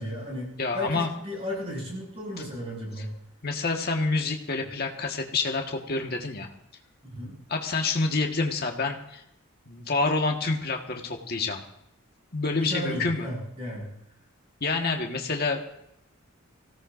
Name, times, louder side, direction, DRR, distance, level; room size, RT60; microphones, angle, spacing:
voice 1, 0.0-3.1 7.0-7.3 12.5-13.9, equal, 30° right, -2 dB, 6.5 m, -34 dB
voice 2, 0.6-1.1 3.0-3.1 3.4-6.5 7.5-9.2 9.7-11.6 12.3-13.3 14.6-15.7, left 3 dB, 50° left, 2 dB, 1.6 m, -28 dB
25.0 x 17.0 x 2.6 m, 0.79 s
head